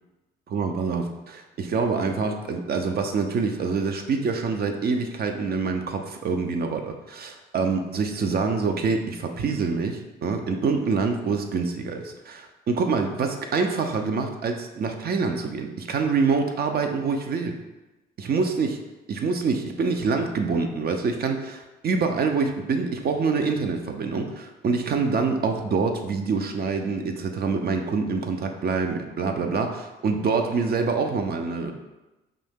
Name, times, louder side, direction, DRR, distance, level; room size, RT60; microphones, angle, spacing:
voice 1, 0.5-17.6 18.2-18.7 19.1-31.7, right 4 dB, 50° right, 5 dB, 0.6 m, -26 dB
5.1 x 2.8 x 3.5 m, 1.1 s
supercardioid pair, 70°, 21 cm